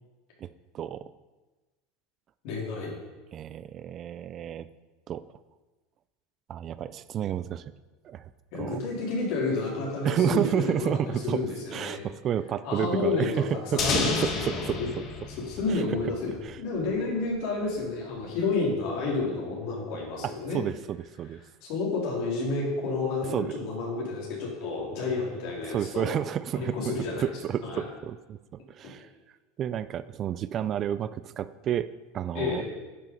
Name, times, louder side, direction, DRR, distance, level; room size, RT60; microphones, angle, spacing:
voice 1, 2.4-2.9 8.5-12.0 12.6-14.9 15.4-16.3 16.6-20.6 21.6-26.1 26.5-27.3 27.6-27.9 32.3-32.7, left 3 dB, 60° left, -3 dB, 3.7 m, -30 dB
voice 2, 3.3-4.7 5.1-5.2 6.5-7.6 8.0-8.3 8.6-8.8 10.0-11.4 11.7-15.0 15.7-16.0 16.4-16.6 20.2-21.4 23.3-23.6 25.7-26.9 27.2-28.4 28.7-29.1 29.6-31.9 32.1-32.6, right 9 dB, 35° right, 14 dB, 0.4 m, -30 dB
sound 1, 13.8-16.6, left 4 dB, 40° left, 1.5 m, -31 dB
10.5 x 5.9 x 5.4 m, 1.2 s
supercardioid pair, 130°, 0 cm